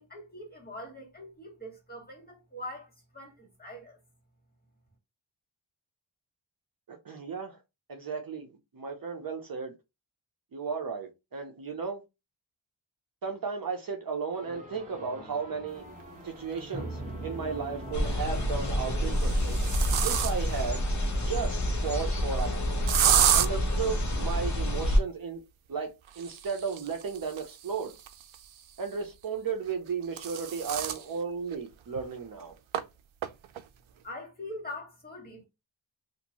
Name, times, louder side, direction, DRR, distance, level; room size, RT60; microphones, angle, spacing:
voice 1, 0.0-4.0 34.0-35.4, left 1 dB, 20° left, 1.7 m, -43 dB
voice 2, 6.9-7.6 7.9-8.5 8.7-9.7 10.5-12.0 13.2-15.9 16.2-19.6 20.0-20.8 21.3-22.8 23.3-25.4 25.7-28.0 28.8-32.6, right 5 dB, 50° right, 0.7 m, -34 dB
sound 1, 14.3-19.9, right 1 dB, 15° right, 1.1 m, -42 dB
sound 2, 16.5-16.6 18.0-18.5 19.0-20.6 22.9-23.5 26.1-28.7 29.7-31.0 31.5-31.6 32.0-32.1 32.7-32.8 33.2-33.6, right 10 dB, 90° right, 0.5 m, -29 dB
sound 3, 17.9-25.0, equal, 40° left, 0.9 m, -28 dB
2.9 x 2.6 x 2.9 m
wide cardioid pair, 95°, 46 cm